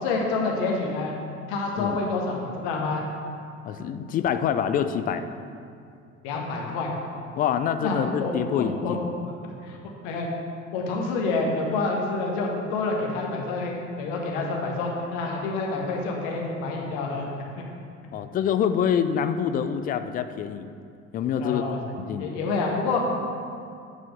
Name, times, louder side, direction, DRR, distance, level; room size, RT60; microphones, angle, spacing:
voice 1, 0.0-1.2 1.5-3.0 6.2-6.9 7.8-9.0 9.2-9.8 10.0-10.3 10.7-17.3 17.5-17.6 21.4-21.8 22.2-23.1, left 3 dB, 55° left, 0 dB, 1.4 m, -28 dB
voice 2, 3.6-5.2 7.4-9.0 18.1-20.7 21.1-21.6 22.1-22.3, left 8 dB, 25° left, 10 dB, 0.4 m, -26 dB
8.2 x 4.8 x 5.2 m, 2.4 s
figure-of-eight pair, 60°, 39 cm